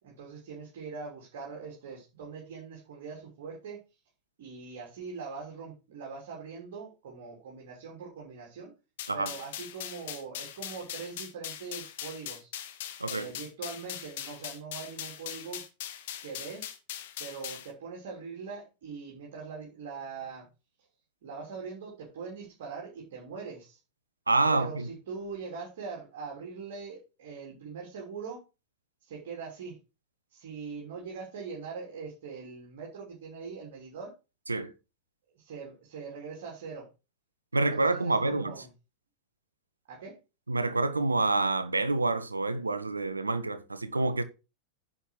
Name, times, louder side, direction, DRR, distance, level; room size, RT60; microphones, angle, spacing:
voice 1, 0.0-3.8 4.4-8.7 9.1-12.5 13.0-15.6 16.2-16.7 17.2-20.5 21.2-23.8 24.5-28.4 29.0-29.8 30.3-34.1 35.3-36.9 37.5-38.7 39.9-40.2, right 5 dB, 55° right, 3.3 m, -42 dB
sound 1, 9.0-17.7, left 11 dB, 55° left, 1.5 m, -41 dB
voice 2, 24.3-24.9 34.5-34.7 37.5-38.5 40.5-44.2, right 3 dB, 80° right, 1.1 m, -27 dB
10.0 x 5.6 x 4.7 m
figure-of-eight pair, 90°, 0 cm